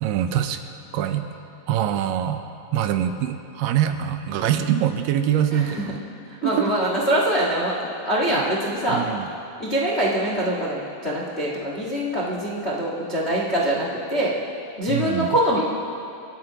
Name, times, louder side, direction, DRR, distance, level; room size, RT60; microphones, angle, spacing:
voice 1, 0.0-0.6 0.9-1.3 1.7-2.4 2.7-5.9 6.6-6.7 8.9-9.3 14.9-15.3, right 10 dB, 80° right, 8 dB, 2.2 m, -23 dB
voice 2, 5.5-5.9 6.2-9.0 9.6-14.4 14.8-15.6, right 1 dB, 60° left, -4 dB, 0.6 m, -24 dB
28.0 x 13.5 x 2.9 m, 2.7 s
omnidirectional pair, 4.2 m